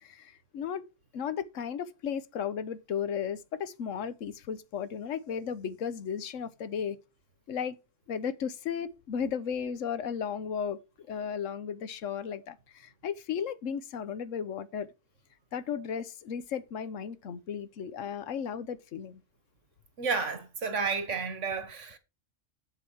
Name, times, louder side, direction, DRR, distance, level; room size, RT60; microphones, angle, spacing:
voice 1, 0.0-0.8 1.1-7.0 7.5-7.8 8.1-10.8 11.1-14.9 15.5-19.2, left 7 dB, 85° left, 1.2 m, -35 dB
voice 2, 20.0-22.0, right 5 dB, 75° right, 1.8 m, -31 dB
8.0 x 7.8 x 4.5 m
omnidirectional pair, 1.3 m